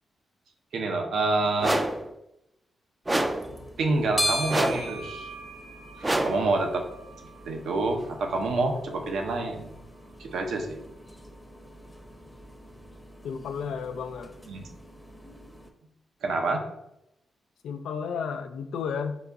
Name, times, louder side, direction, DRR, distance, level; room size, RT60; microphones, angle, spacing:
voice 1, 0.7-1.8 3.8-5.3 6.0-6.8 7.4-9.7 10.2-10.8 14.5-14.6 16.2-16.6, right 2 dB, 80° right, 4 dB, 0.7 m, -27 dB
sound 1, 1.6-2.1 3.1-3.5 4.5-5.0 6.0-6.5, right 1 dB, 20° right, 0.4 m, -26 dB
sound 2, 3.2-15.7, equal, 5° left, 0.7 m, -39 dB
voice 2, 13.2-14.3 17.6-19.2, left 6 dB, 90° left, 8 dB, 0.4 m, -32 dB
3.8 x 2.8 x 3.5 m, 0.84 s
cardioid pair, 70°, 0 cm